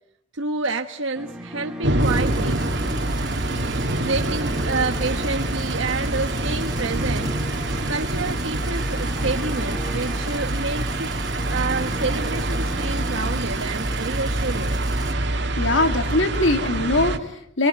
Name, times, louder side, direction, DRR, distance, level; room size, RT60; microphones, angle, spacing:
voice 1, 0.3-2.7 4.0-7.3 7.9-11.1 11.5-14.8, right 3 dB, 75° right, 5 dB, 1.2 m, -28 dB
sound 1, 1.1-15.3, equal, 5° right, 1.7 m, -38 dB
sound 2, 1.8-17.2, right 1 dB, 55° right, 2.2 m, -26 dB
sound 3, 2.0-15.1, right 1 dB, 20° right, 2.5 m, -33 dB
voice 2, 15.6-17.7, left 2 dB, 65° left, 6 dB, 2.7 m, -21 dB
27.0 x 23.5 x 9.3 m, 0.75 s
head